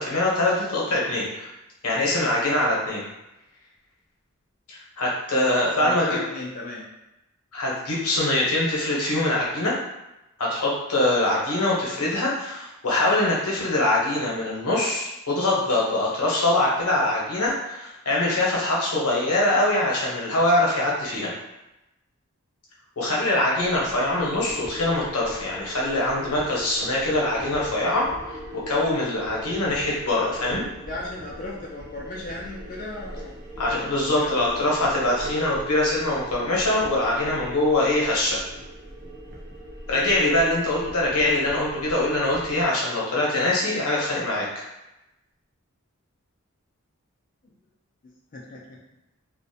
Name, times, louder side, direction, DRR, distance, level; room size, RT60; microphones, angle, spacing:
voice 1, 0.0-1.5 1.8-3.1 4.7-6.2 7.5-9.7 10.4-21.3 23.0-30.6 33.6-38.4 39.9-44.6, left 1 dB, 80° left, -4 dB, 0.8 m, -23 dB
voice 2, 5.5-6.9 30.8-33.3 33.7-34.9 48.3-48.6, left 2 dB, 35° left, -5 dB, 0.3 m, -36 dB
sound 1, 23.6-42.6, right 1 dB, 45° right, 0.5 m, -40 dB
2.4 x 2.0 x 2.6 m, 0.93 s
head